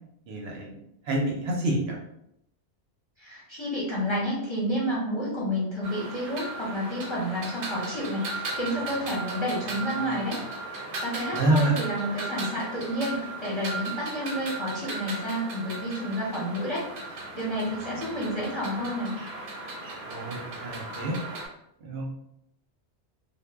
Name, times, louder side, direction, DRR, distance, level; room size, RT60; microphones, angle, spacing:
voice 1, 0.3-0.8 1.1-2.0 11.3-11.7 20.1-21.2 21.8-22.1, right 1 dB, 70° right, -2 dB, 0.8 m, -27 dB
voice 2, 3.2-10.4 10.7-19.1, equal, 30° left, -7 dB, 0.6 m, -30 dB
sound 1, 5.8-21.5, right 3 dB, 90° right, 1.0 m, -37 dB
2.0 x 2.0 x 3.3 m, 0.77 s
omnidirectional pair, 1.2 m